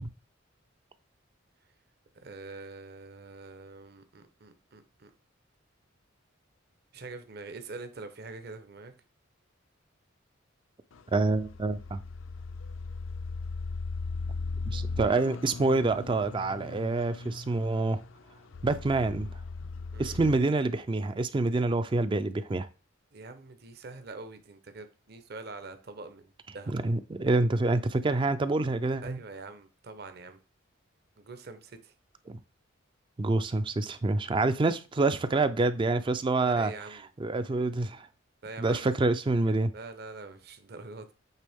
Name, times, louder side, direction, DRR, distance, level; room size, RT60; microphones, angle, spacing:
voice 1, 2.2-5.1 6.9-8.9 19.9-20.2 23.1-26.7 29.0-30.4 31.2-31.9 36.4-37.1 38.4-38.9 39.7-41.1, right 3 dB, 50° right, 0.8 m, -44 dB
sound 1, 10.9-20.3, left 3 dB, 70° left, 0.5 m, -38 dB
voice 2, 11.1-12.0 14.7-18.0 18.6-19.3 20.0-22.7 26.7-29.2 32.3-32.4 33.2-36.7 37.2-38.1 38.6-39.7, right 3 dB, 25° right, 0.3 m, -27 dB
8.2 x 3.4 x 3.5 m
head